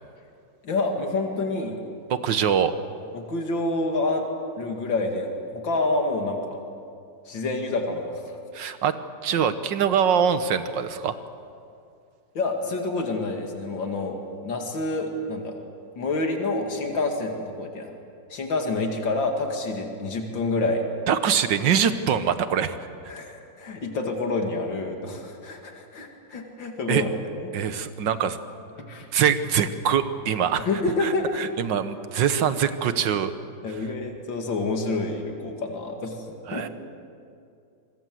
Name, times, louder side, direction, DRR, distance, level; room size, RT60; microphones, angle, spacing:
voice 1, 0.6-1.7 3.1-4.2 4.6-6.6 7.3-8.4 12.3-14.2 14.4-15.5 16.0-17.9 18.3-20.8 23.1-27.1 27.3-27.5 28.9-29.1 30.6-31.4 33.6-36.2 36.5-36.6, left 2 dB, 80° left, 3 dB, 3.0 m, -28 dB
voice 2, 2.1-2.7 8.5-8.9 9.2-11.1 21.1-22.8 26.9-27.0 27.5-28.4 29.1-30.7 31.0-33.3 36.5-36.7, right 8 dB, 75° right, 11 dB, 1.8 m, -23 dB
25.5 x 22.5 x 7.8 m, 2.4 s
omnidirectional pair, 2.0 m